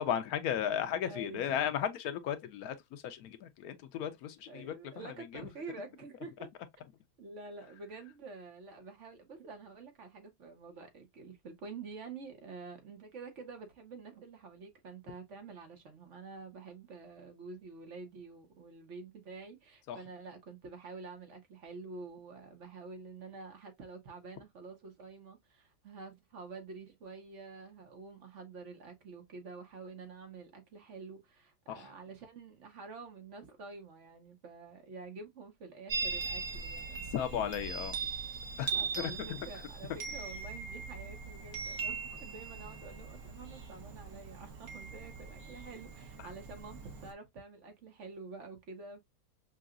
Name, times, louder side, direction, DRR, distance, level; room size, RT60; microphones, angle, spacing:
voice 1, 0.0-4.7 5.3-5.4 19.9-20.0 31.7-31.8 37.1-38.0 38.6-38.7 39.0-39.1, left 9 dB, 80° left, 1.1 m, -35 dB
voice 2, 1.1-1.7 4.5-6.5 7.2-37.2 38.7-49.0, right 4 dB, 55° right, 1.2 m, -48 dB
Chime, 35.9-47.1, right 5 dB, 70° right, 1.5 m, -40 dB
5.7 x 2.3 x 2.4 m
omnidirectional pair, 1.6 m